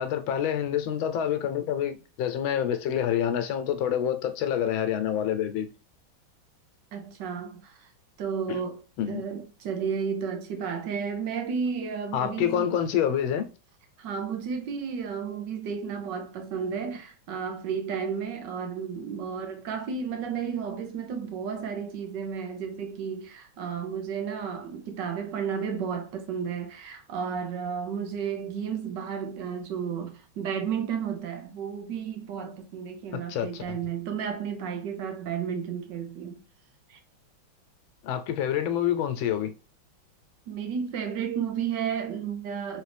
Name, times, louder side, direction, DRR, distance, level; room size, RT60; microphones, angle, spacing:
voice 1, 0.0-5.7 8.5-8.6 9.0-9.2 12.1-13.4 33.1-33.8 38.0-39.5, left 9 dB, 90° left, 1.5 m, -27 dB
voice 2, 6.9-7.9 8.2-12.8 14.0-36.4 36.9-37.0 40.5-42.8, right 7 dB, 70° right, 1.4 m, -32 dB
3.9 x 3.2 x 3.3 m
omnidirectional pair, 2.1 m